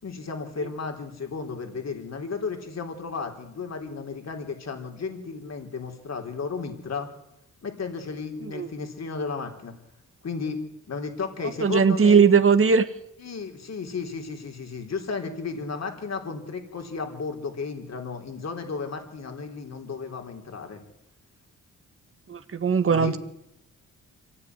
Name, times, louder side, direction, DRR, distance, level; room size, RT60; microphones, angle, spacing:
voice 1, 0.0-7.1 7.6-9.7 10.2-10.6 10.9-12.2 13.2-20.8 22.9-23.2, left 4 dB, 55° left, 4 dB, 4.1 m, -34 dB
voice 2, 11.6-12.9 22.3-23.2, right 6 dB, 45° right, 8 dB, 1.8 m, -19 dB
25.0 x 16.5 x 9.8 m, 0.85 s
cardioid pair, 80°, 32 cm